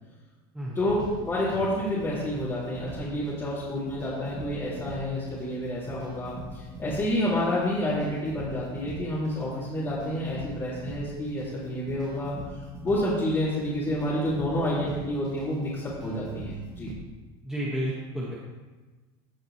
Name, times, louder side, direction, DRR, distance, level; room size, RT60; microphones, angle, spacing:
voice 1, 0.7-12.3 12.8-16.9, left 1 dB, 20° left, -10 dB, 3.0 m, -29 dB
sound 1, 0.8-16.9, right 2 dB, 30° right, 1.6 m, -43 dB
voice 2, 17.4-18.3, right 1 dB, 5° right, -7 dB, 1.8 m, -31 dB
16.0 x 6.4 x 3.3 m, 1.3 s
supercardioid pair, 140°, 13 cm